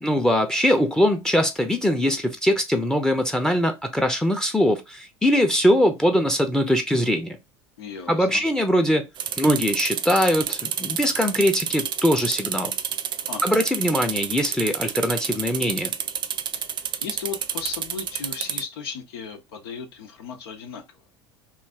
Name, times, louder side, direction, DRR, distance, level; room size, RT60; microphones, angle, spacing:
voice 1, 0.0-7.4 8.1-9.1 9.4-12.7 13.4-15.9, equal, 5° left, 0.6 m, -22 dB
voice 2, 7.8-8.4 13.3-13.6 16.6-21.0, left 6 dB, 70° left, 0.7 m, -36 dB
sound 1, 9.2-18.6, right 9 dB, 35° right, 0.4 m, -29 dB
3.2 x 2.5 x 3.5 m
hypercardioid pair, 75°, 14 cm